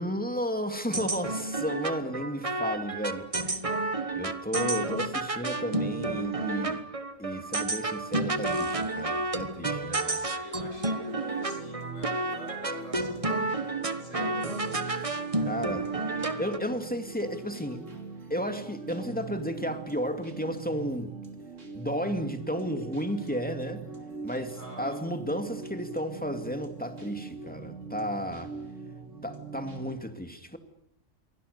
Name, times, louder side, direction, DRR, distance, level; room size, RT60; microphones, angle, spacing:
voice 1, 0.0-6.8 7.2-10.2 15.5-15.9 16.2-17.8 18.3-21.1 21.7-23.8 24.2-28.5 29.2-30.6, equal, 5° left, 2.4 m, -33 dB
sound 1, 0.9-16.6, right 2 dB, 25° right, 1.3 m, -31 dB
voice 2, 9.9-14.6 24.5-25.0, equal, 70° left, 7.1 m, -48 dB
sound 2, 11.1-29.9, right 4 dB, 65° right, 3.3 m, -42 dB
28.5 x 24.0 x 6.9 m
omnidirectional pair, 1.4 m